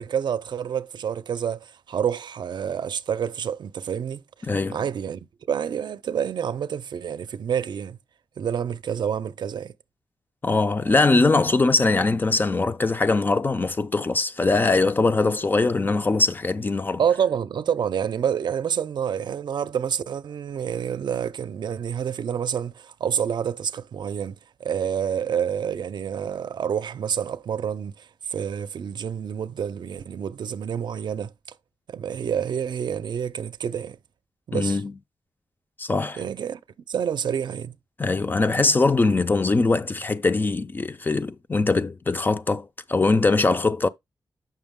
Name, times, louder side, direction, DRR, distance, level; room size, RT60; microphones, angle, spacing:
voice 1, 0.0-4.2 4.7-8.0 8.4-9.7 17.0-31.3 31.9-34.0 34.5-34.8 36.2-36.6 36.9-37.8, right 8 dB, 70° right, 0.5 m, -28 dB
voice 2, 4.4-4.8 10.4-17.0 34.5-34.9 35.8-36.2 38.0-43.9, left 3 dB, 25° left, 0.4 m, -22 dB
7.8 x 5.9 x 3.6 m
wide cardioid pair, 160°, 8 cm